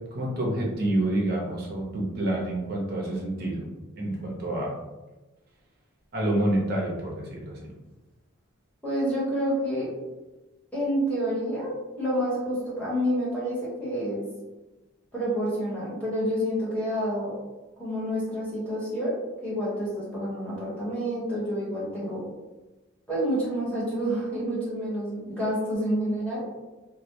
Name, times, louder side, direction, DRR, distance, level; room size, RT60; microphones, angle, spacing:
voice 1, 0.1-3.6 4.0-4.7 6.1-7.7, right 1 dB, 50° right, -2 dB, 0.6 m, -28 dB
voice 2, 8.8-9.9 10.7-14.2 15.1-17.3 17.8-19.2 19.4-22.2 23.1-26.4, equal, 5° left, -9 dB, 0.9 m, -28 dB
2.2 x 2.1 x 2.8 m, 1.1 s
head